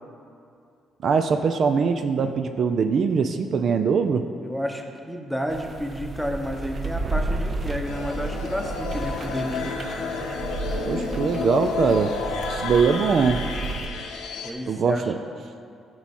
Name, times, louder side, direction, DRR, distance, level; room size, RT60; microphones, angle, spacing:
voice 1, 1.0-4.2 10.8-12.1 12.5-13.4 14.7-15.2, right 5 dB, 60° right, 8 dB, 0.4 m, -22 dB
voice 2, 4.4-9.8 14.4-15.1, equal, ahead, 3 dB, 0.9 m, -31 dB
sound 1, 5.5-13.9, right 2 dB, 40° right, 0.8 m, -32 dB
sound 2, 7.8-14.5, left 4 dB, 90° left, 0.9 m, -31 dB
14.0 x 4.8 x 4.2 m, 2.4 s
cardioid pair, 90°, 0 cm